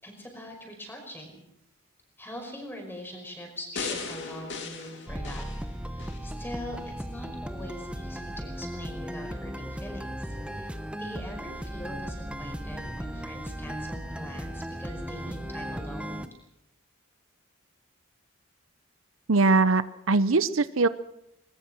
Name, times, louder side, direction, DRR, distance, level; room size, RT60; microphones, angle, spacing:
voice 1, 0.0-1.4 2.2-5.5 5.9-16.2, equal, 10° left, 3 dB, 5.4 m, -42 dB
sound 1, 3.8-6.2 6.7-6.9, left 4 dB, 60° left, 2.7 m, -37 dB
sound 2, 5.1-16.3, equal, 5° right, 1.0 m, -36 dB
voice 2, 19.3-20.9, right 3 dB, 70° right, 15 dB, 0.7 m, -22 dB
20.5 x 20.5 x 6.3 m, 0.83 s
head